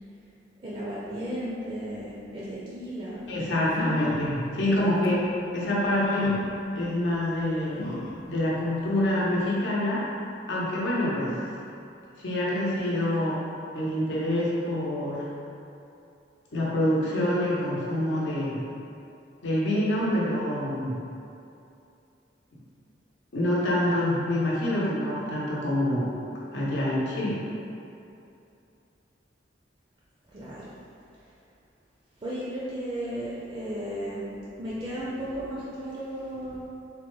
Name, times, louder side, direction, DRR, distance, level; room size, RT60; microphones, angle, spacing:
voice 1, 0.6-3.5 4.7-4.8 30.3-30.7 32.2-36.6, equal, 30° right, -8 dB, 0.4 m, -35 dB
voice 2, 3.3-5.3 5.5-6.4 6.7-8.0 8.3-10.0 10.5-11.3 12.2-13.4 13.7-15.3 16.5-18.6 19.4-21.0 23.3-26.1 26.5-27.4, left 1 dB, 85° left, -6 dB, 0.8 m, -26 dB
sound 1, 3.3-3.4 3.7-4.3 5.0-5.1 6.0-6.5 7.8-8.3 8.8-8.9 9.2-9.3, left 1 dB, 45° left, 0.4 m, -35 dB
3.4 x 2.1 x 3.1 m, 2.7 s
head